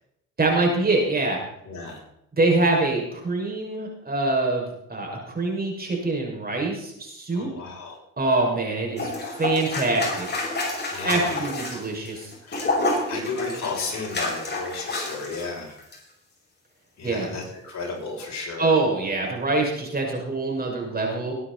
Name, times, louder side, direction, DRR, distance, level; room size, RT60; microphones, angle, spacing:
voice 1, 0.4-1.4 2.3-7.5 8.2-9.1 9.4-10.3 11.0-12.3 17.0-17.3 18.6-21.3, right 2 dB, 30° right, 0 dB, 5.9 m, -24 dB
voice 2, 1.6-2.0 7.3-8.0 10.9-11.4 12.4-12.7 13.1-15.8 17.0-18.7, left 4 dB, 60° left, -2 dB, 6.9 m, -33 dB
sound 1, 9.0-15.5 15.8-16.0, left 2 dB, 35° left, 6.3 m, -29 dB
20.5 x 9.6 x 4.1 m, 0.79 s
cardioid pair, 90°, 30 cm